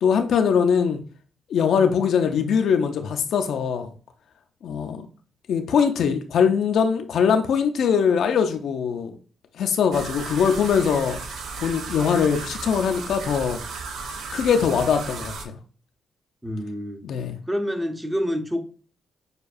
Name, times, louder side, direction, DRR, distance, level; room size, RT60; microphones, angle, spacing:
voice 1, 0.0-1.0 1.5-3.9 4.6-5.1 5.5-9.2 9.6-11.2 11.6-13.6 14.3-15.5 17.0-17.4, left 7 dB, 75° left, 0.5 m, -22 dB
sound 1, 9.9-15.5, right 4 dB, 75° right, 0.5 m, -35 dB
voice 2, 16.4-17.0 17.5-18.6, equal, 15° right, 0.8 m, -27 dB
6.6 x 2.3 x 2.6 m
cardioid pair, 65°, 0 cm